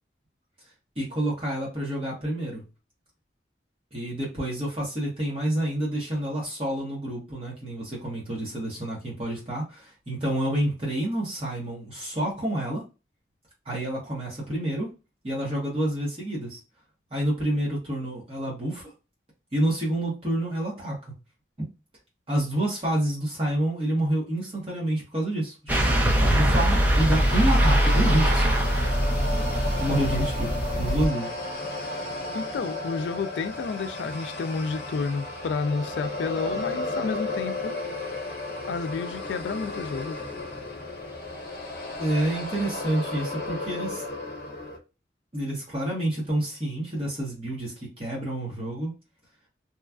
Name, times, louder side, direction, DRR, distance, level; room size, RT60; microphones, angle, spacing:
voice 1, 1.0-2.6 3.9-12.8 13.6-14.9 15.2-16.6 17.1-18.9 19.5-21.0 21.6-21.7 22.3-26.0 26.3-28.6 29.8-31.3 42.0-44.0 45.3-48.9, right 1 dB, 30° right, 1.2 m, -28 dB
sound 1, 25.7-31.1, equal, 10° right, 0.5 m, -22 dB
sound 2, 26.5-44.8, left 2 dB, 60° left, 0.8 m, -34 dB
voice 2, 32.3-37.8 38.7-40.2, left 4 dB, 85° left, 0.3 m, -30 dB
3.0 x 2.4 x 2.3 m
head